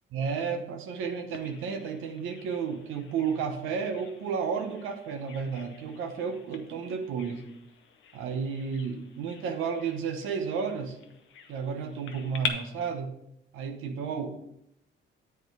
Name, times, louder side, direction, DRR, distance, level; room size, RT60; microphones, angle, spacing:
voice 1, 0.1-7.5 8.1-11.0 11.5-13.1 13.5-14.3, right 6 dB, 90° right, 5 dB, 0.9 m, -32 dB
Bird vocalization bird call bird song, 1.3-12.5, left 7 dB, 80° left, 0.9 m, -44 dB
8.2 x 4.8 x 4.6 m, 0.79 s
cardioid pair, 90°, 20 cm